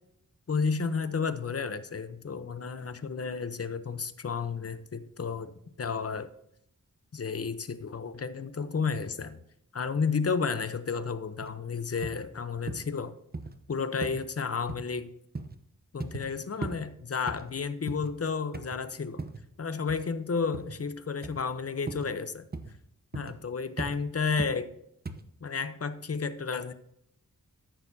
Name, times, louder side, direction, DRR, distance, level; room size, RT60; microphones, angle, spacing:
voice 1, 0.5-5.5 5.8-6.3 7.1-9.4 9.7-13.1 13.7-15.1 15.9-19.2 19.6-22.4 23.1-24.7 25.4-26.7, left 5 dB, 45° left, 12 dB, 0.8 m, -32 dB
sound 1, 11.4-11.5 12.0-12.2 12.7-12.9 13.3-13.5 14.0-14.2 14.7-14.9 15.3-15.6 16.0-16.3 16.6-16.8 17.3-18.1 18.5-18.8 19.2-19.5 19.9-20.1 20.5-20.8 21.2-21.4 21.9-22.1 22.5-22.7 23.1-23.4 23.8-24.0 24.4-24.6 25.0-25.2, right 3 dB, 30° right, 0.8 m, -38 dB
14.5 x 6.6 x 2.7 m, 0.75 s
wide cardioid pair, 75°, 34 cm